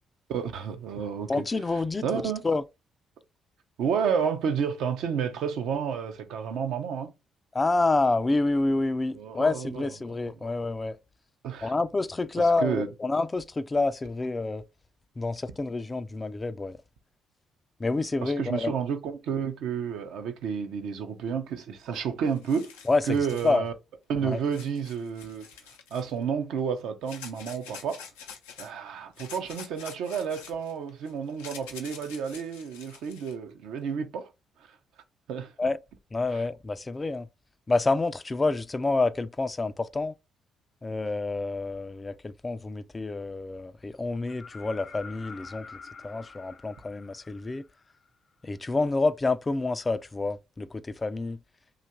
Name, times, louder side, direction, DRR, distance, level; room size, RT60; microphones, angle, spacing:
voice 1, 0.3-1.4 1.7-2.4 3.8-7.1 9.1-9.9 10.2-10.3 11.4-11.7 12.4-12.9 18.2-22.7 23.1-23.7 24.1-25.5 25.9-28.1 28.6-34.3 34.6-34.8 35.3-35.5 36.3-36.4, right 7 dB, 75° right, 0.6 m, -31 dB
voice 2, 1.3-2.6 7.5-11.0 11.6-14.6 15.2-16.8 17.8-18.7 22.9-23.0 23.4-23.6 24.2-24.4 35.6-35.8 36.1-37.3 37.7-40.1 40.8-45.7 46.0-47.6 48.4-51.4, left 3 dB, 30° left, 0.4 m, -28 dB
sound 1, 21.9-22.0 22.3-23.6 24.5-26.2 27.1-28.7 29.2-33.3, left 7 dB, 90° left, 0.5 m, -47 dB
sound 2, 44.3-48.1 50.0-50.1, left 5 dB, 45° left, 0.8 m, -46 dB
2.8 x 2.4 x 4.3 m
hypercardioid pair, 50°, 0 cm